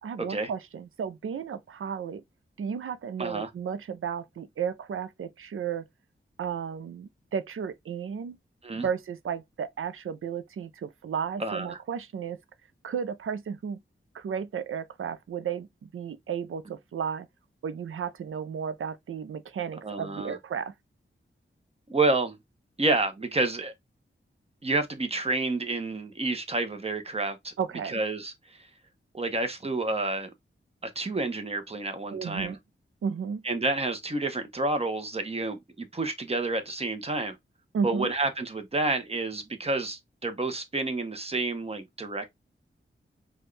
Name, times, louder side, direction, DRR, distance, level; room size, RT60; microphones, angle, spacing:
voice 1, 0.0-2.2 2.6-5.9 6.4-8.4 8.8-12.4 12.8-13.8 14.1-17.3 17.6-20.7 27.6-28.0 32.1-32.6 33.0-33.4 37.7-38.1, right 7 dB, 80° right, 0.5 m, -33 dB
voice 2, 3.2-3.5 8.6-8.9 11.4-11.8 19.8-20.4 21.9-22.4 22.8-23.7 24.6-27.5 27.8-28.7 29.1-30.3 30.8-32.6 33.4-37.4 37.8-42.3, right 2 dB, 30° right, 0.8 m, -29 dB
4.3 x 2.3 x 3.2 m
wide cardioid pair, 95°, 21 cm